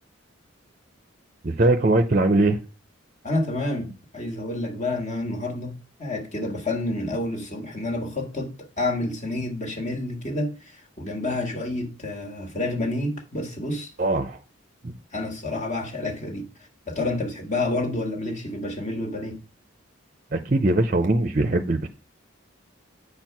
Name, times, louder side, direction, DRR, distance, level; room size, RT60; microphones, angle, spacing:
voice 1, 1.4-2.6 14.0-14.4 14.8-14.9 20.3-21.9, right 2 dB, 40° right, 0.6 m, -21 dB
voice 2, 3.2-13.9 15.1-16.4 16.9-19.4, left 2 dB, 35° left, 1.6 m, -29 dB
8.6 x 4.5 x 5.9 m
head